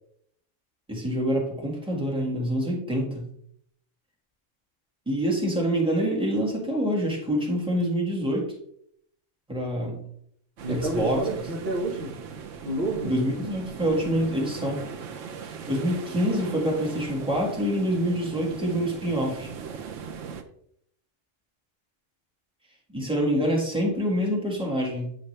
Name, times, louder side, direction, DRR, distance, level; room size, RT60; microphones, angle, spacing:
voice 1, 0.9-3.3 5.1-8.5 9.5-10.0 10.7-11.2 13.0-14.8 15.7-19.5 22.9-25.2, equal, 5° right, -2 dB, 1.8 m, -26 dB
voice 2, 10.6-12.1 12.6-13.1 15.8-15.9, right 2 dB, 50° right, -3 dB, 1.6 m, -29 dB
sound 1, 10.6-20.4, right 6 dB, 80° right, 1.1 m, -39 dB
9.2 x 5.0 x 3.3 m, 0.70 s
omnidirectional pair, 1.3 m